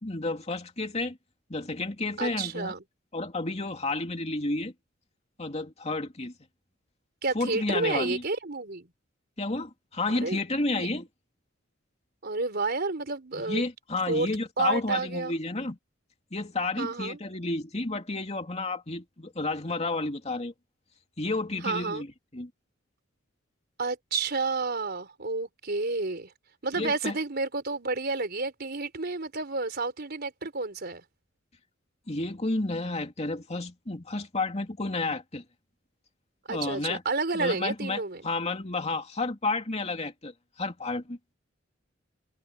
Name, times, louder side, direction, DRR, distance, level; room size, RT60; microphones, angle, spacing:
voice 1, 0.0-1.2 1.5-2.8 3.1-4.7 5.4-6.3 7.3-8.2 9.4-11.1 13.3-15.8 16.3-20.5 21.2-22.5 26.7-27.2 32.1-35.4 36.5-37.0 37.3-41.2, left 2 dB, 35° left, 2.7 m, -31 dB
voice 2, 2.2-2.8 7.2-8.9 10.2-10.4 10.8-10.9 12.2-13.6 14.1-14.3 14.6-15.3 16.8-17.2 21.6-22.0 23.8-26.3 26.6-31.0 36.5-38.2, right 3 dB, 55° right, 4.2 m, -30 dB
head